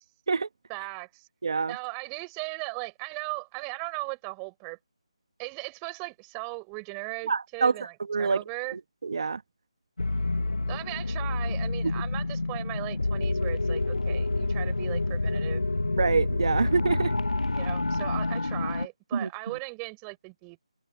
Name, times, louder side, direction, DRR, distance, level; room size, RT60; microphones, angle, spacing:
voice 1, 0.7-1.3 1.7-4.8 5.4-8.8 10.7-15.7 17.5-20.6, right 40 dB or more, 15° right, 7.6 m, -38 dB
voice 2, 1.4-1.7 7.3-7.7 8.1-8.4 8.7-9.4 16.0-17.1 19.1-19.3, right 5 dB, 50° right, 1.6 m, -26 dB
sound 1, 10.0-18.9, left 2 dB, 85° left, 1.2 m, -28 dB
figure-of-eight pair, 165°, 3 cm